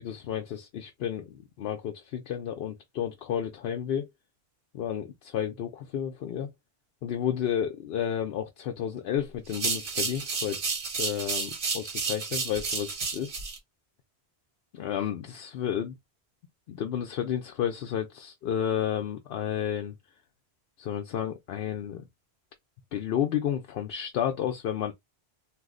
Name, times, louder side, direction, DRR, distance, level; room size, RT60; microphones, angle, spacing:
voice 1, 0.0-4.1 4.7-6.5 7.0-13.3 14.7-16.0 16.7-19.9 20.8-22.1 22.9-24.9, left 9 dB, 70° left, 0.8 m, -31 dB
sound 1, 9.5-13.6, right 5 dB, 80° right, 1.2 m, -31 dB
2.5 x 2.1 x 3.6 m
omnidirectional pair, 1.1 m